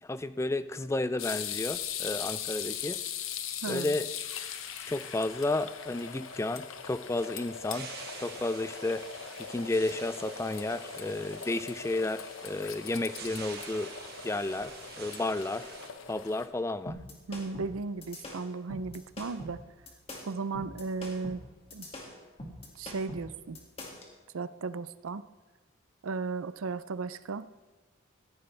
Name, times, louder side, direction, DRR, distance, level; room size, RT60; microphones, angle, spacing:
voice 1, 0.0-3.0 3.7-4.1 4.9-7.9 8.2-9.2 9.5-13.9 14.2-15.8 16.1-17.0, left 2 dB, 15° left, 13 dB, 0.3 m, -32 dB
sound 1, 1.2-16.5, left 8 dB, 80° left, 1.0 m, -40 dB
voice 2, 3.6-3.9 17.3-19.6 20.2-21.4 21.7-21.9 22.8-23.6 24.3-25.2 26.0-27.5, right 4 dB, 85° right, 15 dB, 0.5 m, -35 dB
sound 2, 4.7-15.9, right 5 dB, 50° right, 1.9 m, -48 dB
sound 3, 16.9-24.1, left 1 dB, 30° left, 2.1 m, -43 dB
16.0 x 14.0 x 3.4 m, 1.3 s
head